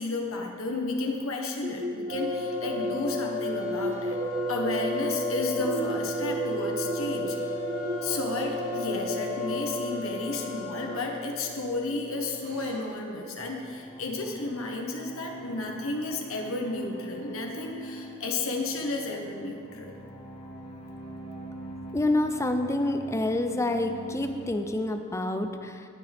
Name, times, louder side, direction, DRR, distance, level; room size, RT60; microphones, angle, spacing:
voice 1, 0.0-4.2 4.5-7.4 8.0-20.0, left 2 dB, 85° left, 1 dB, 1.2 m, -32 dB
sound 1, 1.6-13.3, left 1 dB, 40° right, 1.0 m, -32 dB
sound 2, 2.1-13.1, equal, 70° right, 1.7 m, -40 dB
sound 3, 13.4-24.5, right 1 dB, 30° left, 1.8 m, -43 dB
voice 2, 21.9-25.9, left 1 dB, 15° left, 7 dB, 0.5 m, -27 dB
18.5 x 6.6 x 3.5 m, 2.3 s
head